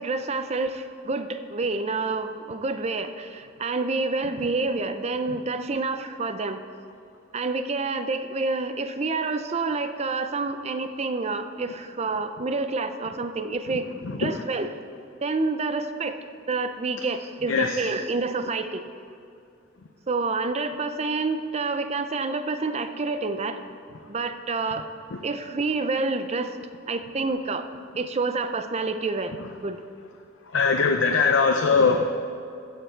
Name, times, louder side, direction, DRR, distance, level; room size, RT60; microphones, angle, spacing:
voice 1, 0.0-6.6 7.3-13.9 14.2-14.7 15.2-16.2 16.5-18.8 20.1-23.6 24.1-24.8 25.2-26.5 26.9-27.6 28.0-29.8, right 3 dB, 35° right, 8 dB, 0.5 m, -28 dB
voice 2, 14.0-14.4 17.5-17.9 30.5-32.1, left 4 dB, 75° left, 4 dB, 0.6 m, -21 dB
15.0 x 6.7 x 4.5 m, 2.5 s
head